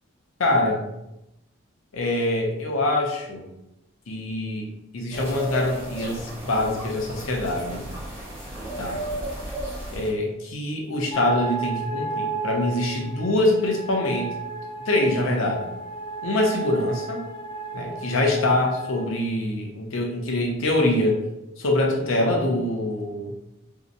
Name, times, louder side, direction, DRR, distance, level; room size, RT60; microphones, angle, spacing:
voice 1, 0.4-0.9 1.9-3.4 4.1-4.6 4.9-7.8 8.8-9.0 9.9-14.3 14.9-15.6 16.2-17.3 17.7-21.2 21.6-23.3, left 1 dB, 75° left, 0 dB, 0.6 m, -24 dB
sound 1, 5.1-10.1, right 1 dB, 10° right, 0.8 m, -34 dB
sound 2, 11.1-19.1, right 4 dB, 25° left, 0.3 m, -33 dB
2.7 x 2.0 x 2.5 m, 0.88 s
head